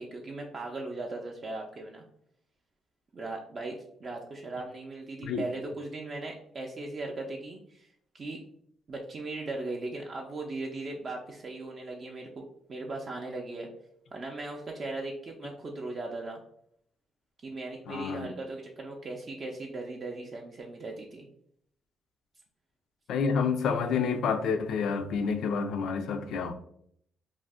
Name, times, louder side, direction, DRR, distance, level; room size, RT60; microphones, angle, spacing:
voice 1, 0.0-2.1 3.1-7.9 8.1-8.4 8.9-12.4 12.7-13.7 14.1-16.4 17.4-21.3, right 2 dB, 40° right, 0.4 m, -38 dB
voice 2, 17.9-18.3 23.1-26.5, left 5 dB, 75° left, 0.3 m, -29 dB
2.4 x 2.0 x 3.4 m
cardioid pair, 90°, 0 cm